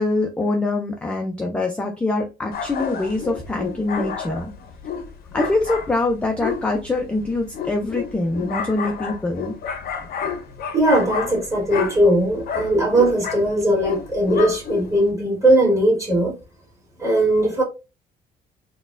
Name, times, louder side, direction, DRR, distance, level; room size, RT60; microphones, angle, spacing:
voice 1, 0.0-4.5 5.3-9.5, left 2 dB, 5° left, 0.3 m, -24 dB
sound 1, 2.5-15.1, left 7 dB, 60° left, 0.6 m, -30 dB
voice 2, 10.7-16.3 17.0-17.6, right 1 dB, 20° right, 1.6 m, -19 dB
4.0 x 2.2 x 2.4 m
cardioid pair, 155°, 17 cm